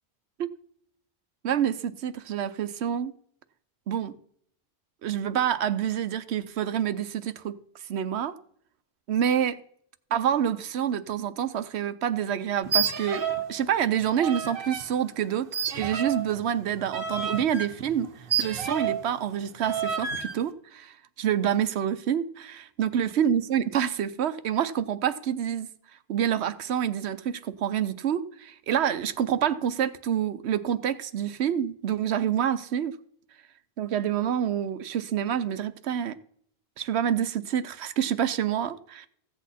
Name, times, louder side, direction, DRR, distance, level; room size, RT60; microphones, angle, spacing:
voice 1, 1.4-3.1 3.9-4.1 5.0-7.5 7.9-8.4 9.1-9.6 10.1-15.5 15.8-18.1 18.4-25.7 26.1-32.9 33.8-36.2 36.8-39.1, right 9 dB, 90° right, 1.0 m, -27 dB
sound 1, 12.6-13.5 13.8-14.9 15.5-19.1 19.6-20.4, right 7 dB, 60° right, 1.1 m, -30 dB
15.0 x 8.3 x 4.2 m
omnidirectional pair, 1.1 m